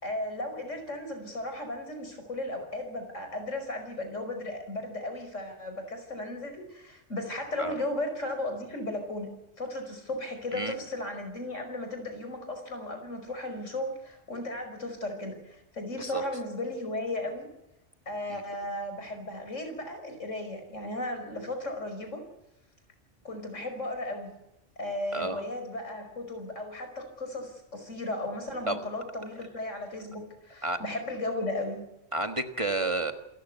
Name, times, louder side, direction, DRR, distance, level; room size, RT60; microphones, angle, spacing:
voice 1, 0.0-9.3 9.6-17.5 18.1-22.2 23.2-24.4 24.8-31.9, left 1 dB, 85° left, 6 dB, 5.6 m, -35 dB
voice 2, 25.1-25.4 28.7-28.8 30.6-30.8 32.1-33.1, right 2 dB, 25° right, 7 dB, 1.6 m, -30 dB
27.0 x 14.5 x 9.4 m, 0.89 s
omnidirectional pair, 1.3 m